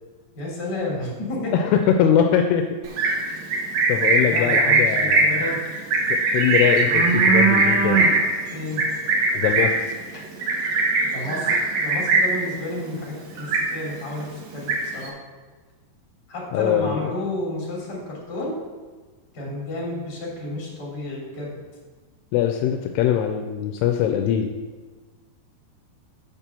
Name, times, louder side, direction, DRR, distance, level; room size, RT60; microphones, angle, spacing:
voice 1, 0.3-1.5 4.2-5.6 8.5-8.8 11.1-15.1 16.3-18.6 19.3-21.6, left 1 dB, 30° left, -4 dB, 2.8 m, -31 dB
voice 2, 1.5-2.6 3.9-5.5 6.1-8.1 9.3-9.7 10.1-10.2 16.5-17.0 22.3-24.5, left 9 dB, 85° left, 5 dB, 2.5 m, -22 dB
Livestock farm animals working animals, 2.8-12.5 12.8-13.1 13.4-14.1 14.4-15.1, right 3 dB, 80° right, 1.5 m, -20 dB
7.3 x 5.9 x 6.8 m, 1.3 s
omnidirectional pair, 4.8 m